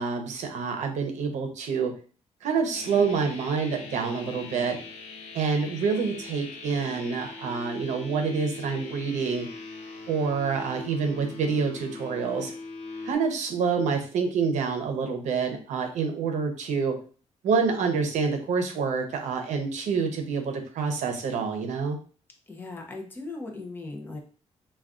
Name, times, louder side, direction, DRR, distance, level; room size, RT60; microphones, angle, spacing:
voice 1, 0.0-1.9 2.4-4.8 5.3-9.5 10.1-12.5 13.0-16.9 17.4-22.0, right 5 dB, 80° right, 5 dB, 0.6 m, -27 dB
sound 1, 2.7-13.2, left 3 dB, 65° left, 0.5 m, -41 dB
voice 2, 22.5-24.2, left 3 dB, 15° left, 1 dB, 0.5 m, -38 dB
2.4 x 2.3 x 3.6 m, 0.40 s
wide cardioid pair, 180°, 12 cm